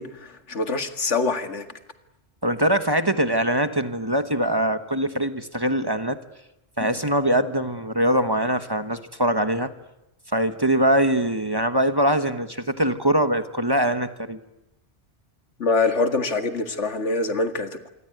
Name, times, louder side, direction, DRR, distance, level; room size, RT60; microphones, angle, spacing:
voice 1, 0.0-1.7 15.6-17.9, left 3 dB, 85° left, 7 dB, 2.3 m, -25 dB
voice 2, 2.4-6.2 6.8-9.7 10.3-14.4, right 1 dB, 20° right, 9 dB, 1.3 m, -22 dB
27.5 x 23.0 x 9.4 m, 0.89 s
omnidirectional pair, 1.2 m